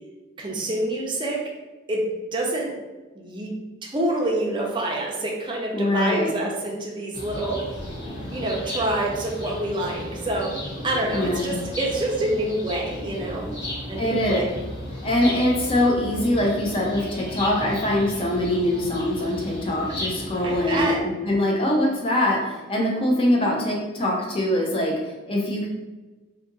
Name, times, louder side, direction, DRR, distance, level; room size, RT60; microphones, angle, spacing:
voice 1, 0.4-1.5 1.9-2.8 3.1-7.7 8.3-10.6 10.8-13.5 13.9-14.5 20.4-21.1, right 1 dB, 25° right, -1 dB, 0.5 m, -27 dB
voice 2, 5.7-6.3 11.1-11.5 14.0-14.4 15.0-25.7, left 1 dB, 30° left, -2 dB, 0.6 m, -23 dB
sound 1, 7.1-20.9, left 1 dB, 65° left, 1.3 m, -34 dB
2.7 x 2.5 x 3.8 m, 1.2 s
head